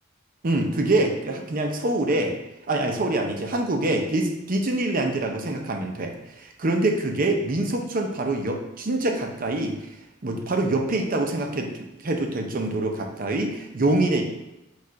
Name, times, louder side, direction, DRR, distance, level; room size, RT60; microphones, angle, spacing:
voice 1, 0.4-2.4 2.7-9.8 10.2-11.7 12.0-14.2, right 2 dB, 45° right, 3 dB, 0.6 m, -25 dB
4.7 x 2.4 x 4.6 m, 0.98 s
head